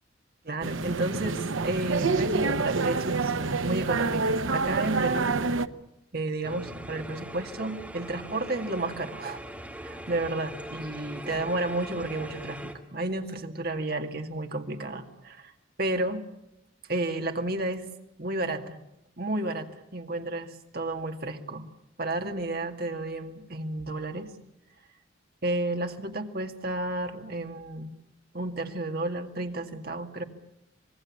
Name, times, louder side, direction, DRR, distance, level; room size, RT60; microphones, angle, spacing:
voice 1, 0.4-5.3 6.1-9.4 9.8-15.5 15.8-16.2 16.9-17.9 18.2-18.8 19.2-21.7 22.0-24.3 25.4-28.0 28.3-30.2, right 2 dB, 50° right, 5 dB, 2.1 m, -32 dB
sound 1, 0.6-5.7, right 3 dB, 85° right, 0.9 m, -27 dB
sound 2, 6.4-12.7, right 1 dB, 5° right, 2.4 m, -41 dB
26.0 x 20.0 x 8.6 m, 0.82 s
head